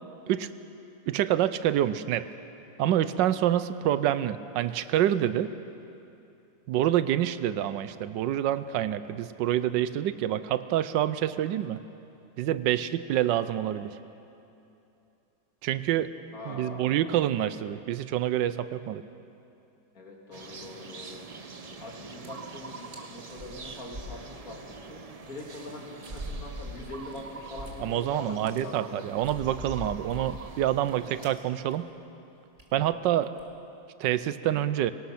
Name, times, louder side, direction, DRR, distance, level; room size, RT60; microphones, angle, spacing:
voice 1, 1.1-2.3 2.8-5.5 6.7-11.8 12.4-13.9 15.6-16.1 16.4-19.0 27.8-31.9 32.7-33.3 34.0-34.9, right 12 dB, 85° right, 14 dB, 1.3 m, -27 dB
voice 2, 16.3-17.2 19.9-21.2 21.8-29.2 31.0-31.2 32.9-33.0, left 2 dB, 50° left, 0 dB, 2.8 m, -43 dB
sound 1, 20.3-31.3, right 4 dB, 60° right, 0.4 m, -45 dB
sound 2, 21.9-22.0 22.2-22.5 22.9-23.0 23.3-24.8 25.2-25.3 26.0-28.0 28.3-28.6 29.1-30.9 31.2-31.4 31.7-31.9 32.2-32.3 32.6-32.8 33.2-33.5, equal, 35° right, 2.4 m, -42 dB
24.0 x 18.5 x 5.9 m, 2.8 s
omnidirectional pair, 1.9 m